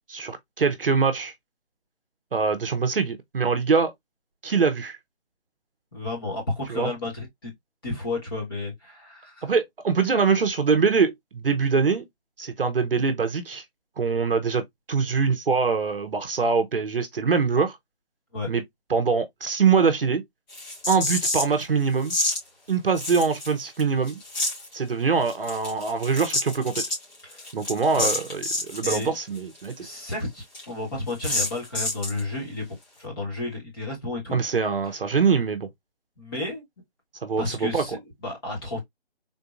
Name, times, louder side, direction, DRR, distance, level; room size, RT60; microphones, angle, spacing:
voice 1, 0.1-1.3 2.3-3.9 4.4-5.0 6.7-6.9 9.4-12.0 12.4-13.6 14.0-14.6 14.9-17.8 18.5-18.6 18.9-20.2 20.9-22.1 22.7-24.2 24.7-26.8 27.5-29.9 34.3-35.7 37.2-37.8, right 5 dB, 55° right, 0.7 m, -23 dB
voice 2, 5.9-7.5 7.8-9.5 18.3-18.5 27.2-27.4 27.9-28.1 28.8-29.1 29.8-32.7 33.0-34.4 36.2-36.6 37.4-38.8, left 2 dB, 20° left, 1.3 m, -32 dB
sound 1, 20.5-21.6 22.1-22.4 23.0-23.8 24.1-24.7 25.3-29.1 29.4-29.5 29.7-29.8 30.1-30.2 30.5-30.6 31.2-32.2, left 2 dB, 40° left, 1.8 m, -28 dB
3.8 x 2.6 x 2.4 m
figure-of-eight pair, 165°, 33 cm